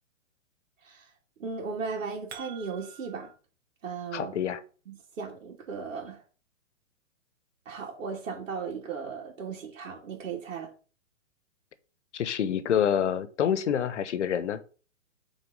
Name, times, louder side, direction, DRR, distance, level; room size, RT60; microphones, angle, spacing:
voice 1, 1.4-3.3 3.8-4.3 4.9-6.2 7.6-10.7, right 5 dB, 70° right, 2.9 m, -36 dB
sound 1, 2.3-3.3, right 9 dB, 50° right, 2.0 m, -47 dB
voice 2, 4.1-4.6 12.1-14.6, left 9 dB, 65° left, 1.1 m, -27 dB
7.3 x 4.0 x 5.3 m
hypercardioid pair, 160°, 39 cm